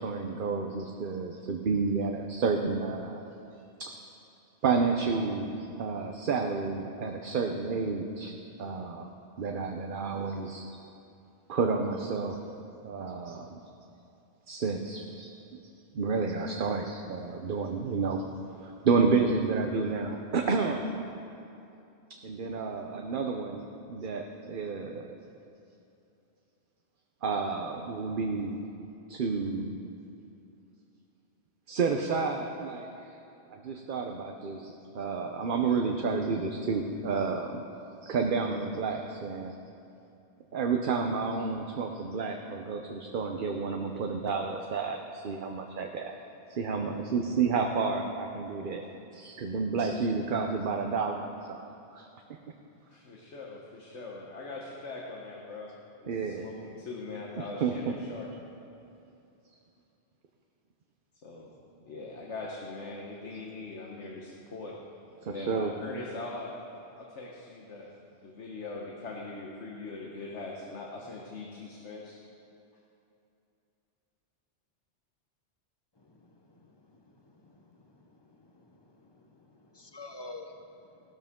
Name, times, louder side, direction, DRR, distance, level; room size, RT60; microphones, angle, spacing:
voice 1, 0.0-3.2 3.8-3.9 4.6-8.3 8.6-9.1 9.4-10.6 11.5-12.5 12.8-13.6 14.5-15.3 15.9-18.2 18.6-20.9 22.2-25.1 27.2-28.6 29.1-29.8 31.7-33.2 33.5-37.6 38.0-39.5 40.5-46.1 46.6-48.8 49.1-51.6 51.9-52.1 56.1-56.5 57.4-57.7 65.3-65.7, right 4 dB, 55° right, 3 dB, 0.9 m, -30 dB
voice 2, 52.9-58.3 61.2-61.6 61.9-64.7 65.2-66.6 66.9-67.9 68.2-72.2, left 3 dB, 85° left, -2 dB, 1.5 m, -41 dB
voice 3, 78.4-81.1, left 2 dB, 25° left, 4 dB, 0.9 m, -48 dB
16.5 x 13.0 x 3.7 m, 2.8 s
omnidirectional pair, 1.2 m